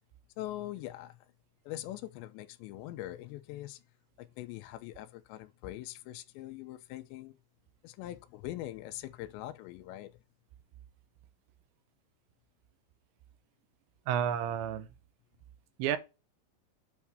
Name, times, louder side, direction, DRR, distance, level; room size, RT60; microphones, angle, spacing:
voice 1, 0.4-1.3 1.7-3.8 4.2-7.4 7.8-10.2, left 14 dB, 85° left, 2.9 m, -42 dB
voice 2, 14.1-14.9 15.8-16.0, right 9 dB, 85° right, 3.1 m, -31 dB
8.5 x 3.5 x 4.7 m
omnidirectional pair, 5.1 m